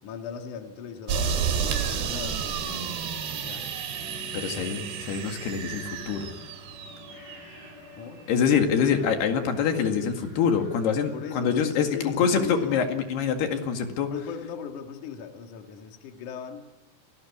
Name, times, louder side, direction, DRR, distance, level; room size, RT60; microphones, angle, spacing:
voice 1, 0.0-3.7 7.9-8.2 11.1-12.8 14.1-16.6, left 7 dB, 55° left, 4 dB, 2.8 m, -39 dB
sound 1, 1.1-7.5, right 7 dB, 75° right, 4.2 m, -31 dB
sound 2, 3.8-13.6, right 1 dB, 35° left, 8.4 m, -47 dB
voice 2, 4.3-6.3 8.3-14.1, left 7 dB, 70° left, 5 dB, 4.0 m, -25 dB
29.0 x 19.5 x 8.4 m, 1.1 s
omnidirectional pair, 5.0 m